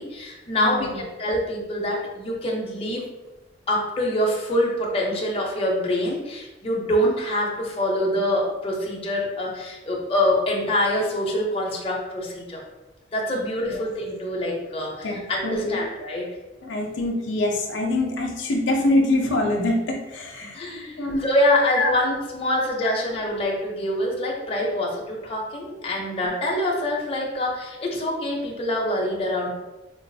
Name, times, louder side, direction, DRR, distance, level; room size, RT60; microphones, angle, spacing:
voice 1, 0.0-3.1 3.7-12.6 13.1-16.3 20.5-29.5, left 1 dB, 30° left, -2 dB, 0.6 m, -25 dB
voice 2, 0.6-1.0 13.7-13.8 15.0-15.8 16.6-20.7 21.0-21.2 21.7-21.9, left 2 dB, 80° left, 1 dB, 0.5 m, -24 dB
3.8 x 2.3 x 2.6 m, 1.1 s
head